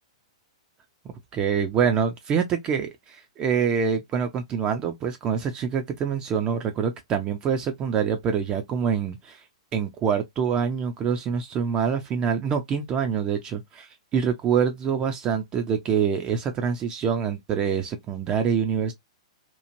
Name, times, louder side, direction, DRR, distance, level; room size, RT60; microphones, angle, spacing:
voice 1, 1.0-9.4 9.7-18.9, right 7 dB, 30° right, 0.5 m, -25 dB
3.0 x 2.4 x 2.5 m
hypercardioid pair, 110°, 3 cm